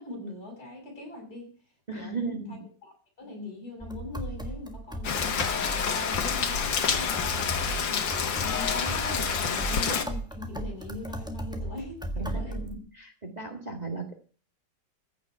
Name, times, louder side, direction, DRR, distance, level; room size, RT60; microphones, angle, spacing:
voice 1, 0.0-1.5 1.9-2.6 2.8-12.6, left 2 dB, 55° left, 1 dB, 7.4 m, -42 dB
voice 2, 1.9-2.6 9.6-9.7 12.2-14.2, right 3 dB, 25° right, 4 dB, 1.9 m, -36 dB
sound 1, 3.8-12.8, right 1 dB, 5° right, 1.3 m, -37 dB
Rain, 5.0-10.0, left 6 dB, 90° left, 2.2 m, -28 dB
15.0 x 6.1 x 9.7 m, 0.40 s
omnidirectional pair, 2.0 m